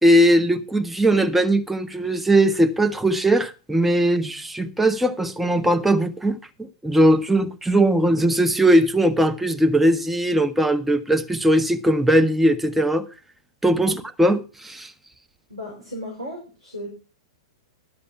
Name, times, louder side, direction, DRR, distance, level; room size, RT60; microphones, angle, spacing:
voice 1, 0.0-13.0 13.6-14.9, right 1 dB, 5° right, 0.9 m, -19 dB
voice 2, 15.5-16.9, equal, 80° right, 5.9 m, -35 dB
12.0 x 7.0 x 5.7 m
figure-of-eight pair, 100°, 3 cm